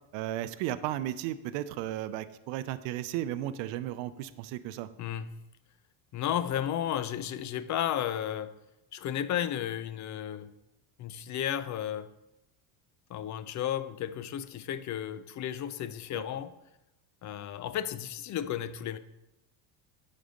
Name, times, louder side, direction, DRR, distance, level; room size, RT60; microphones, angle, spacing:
voice 1, 0.1-4.9 16.1-16.2, right 13 dB, 65° right, 13 dB, 0.6 m, -34 dB
voice 2, 5.0-5.3 6.1-8.6 8.9-10.5 11.0-12.1 13.1-16.6 17.2-19.0, left 10 dB, 40° left, 14 dB, 0.5 m, -33 dB
9.1 x 4.3 x 5.1 m, 0.92 s
supercardioid pair, 100°, 48 cm